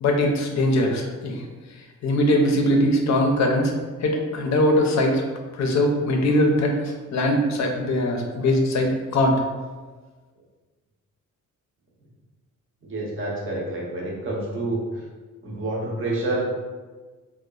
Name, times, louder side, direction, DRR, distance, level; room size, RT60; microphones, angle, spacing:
voice 1, 0.0-1.4 2.0-3.7 4.0-5.2 5.6-6.8 7.1-9.4, left 1 dB, 60° left, 2 dB, 0.5 m, -21 dB
voice 2, 12.8-14.8 15.4-16.4, right 2 dB, 40° right, -3 dB, 0.7 m, -28 dB
2.8 x 2.1 x 2.3 m, 1.4 s
cardioid pair, 130°, 32 cm